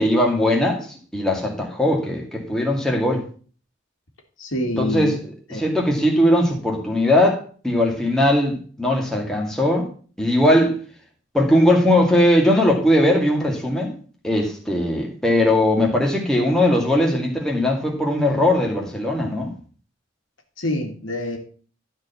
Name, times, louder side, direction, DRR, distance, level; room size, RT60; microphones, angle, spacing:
voice 1, 0.0-3.2 4.8-5.2 5.6-9.9 10.2-10.8 11.3-13.9 14.2-19.5, left 1 dB, 5° left, -1 dB, 2.2 m, -19 dB
voice 2, 4.4-5.2 5.5-5.6 20.6-21.4, left 1 dB, 75° left, 4 dB, 2.1 m, -26 dB
12.5 x 4.5 x 7.0 m, 0.41 s
head